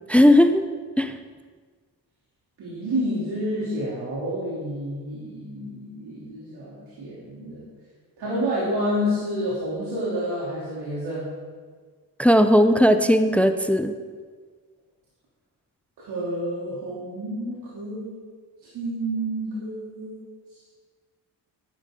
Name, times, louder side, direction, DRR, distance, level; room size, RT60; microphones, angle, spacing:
voice 1, 0.1-0.6 1.0-1.2 12.2-13.9, equal, 5° left, 10 dB, 0.6 m, -17 dB
voice 2, 2.6-7.6 8.2-11.3 16.0-18.2 18.6-20.2 20.5-20.6, equal, 70° right, -7 dB, 3.4 m, -29 dB
12.0 x 9.2 x 3.9 m, 1.5 s
supercardioid pair, 65°, 40 cm